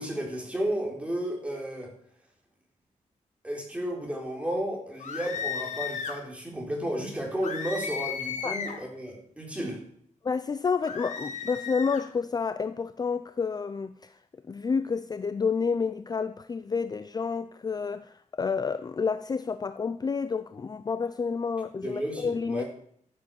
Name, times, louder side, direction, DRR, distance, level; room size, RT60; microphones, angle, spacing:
voice 1, 0.0-1.9 3.4-9.8 21.8-22.6, right 1 dB, 10° right, 4.0 m, -33 dB
sound 1, 5.0-6.2 7.4-8.9 10.8-12.0, left 6 dB, 65° left, 1.9 m, -35 dB
voice 2, 10.2-14.2 14.5-22.6, left 5 dB, 30° left, 0.5 m, -29 dB
14.0 x 7.4 x 7.1 m
wide cardioid pair, 135°, 13 cm